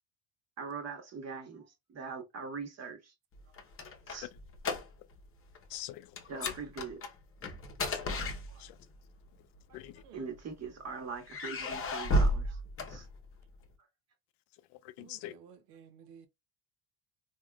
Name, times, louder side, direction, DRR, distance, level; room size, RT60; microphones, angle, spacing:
voice 1, 0.6-3.1 4.1-4.3 6.3-7.0 10.1-12.6 12.9-13.1, right 5 dB, 35° right, 1.3 m, -42 dB
sound 1, 3.4-5.3 5.5-5.8 6.2-8.9 9.8-10.7 11.2-13.5, equal, 30° left, 0.8 m, -33 dB
voice 2, 5.7-6.6 7.9-8.8 9.7-10.0 14.5-15.3, left 15 dB, 65° left, 0.5 m, -46 dB
voice 3, 15.0-16.3, right 8 dB, 75° right, 0.8 m, -55 dB
3.5 x 2.5 x 2.2 m
supercardioid pair, 85°, 45 cm